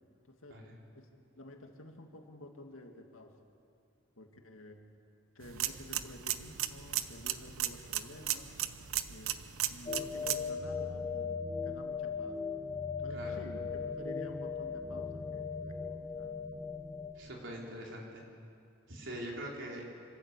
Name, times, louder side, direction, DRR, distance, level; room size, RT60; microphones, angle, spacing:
voice 1, 0.2-0.7 0.9-1.1 1.4-3.3 4.2-4.8 5.3-8.5 9.1-12.4 13.0-16.3, left 1 dB, 85° left, 3 dB, 2.1 m, -51 dB
sound 1, 5.4-10.5, right 12 dB, 90° right, 0.8 m, -36 dB
sound 2, 9.9-17.1, left 5 dB, 25° left, 0.9 m, -38 dB
voice 2, 13.1-13.4 17.2-18.3 18.9-19.8, right 1 dB, 65° right, -2 dB, 4.1 m, -43 dB
26.5 x 13.0 x 8.3 m, 2.4 s
head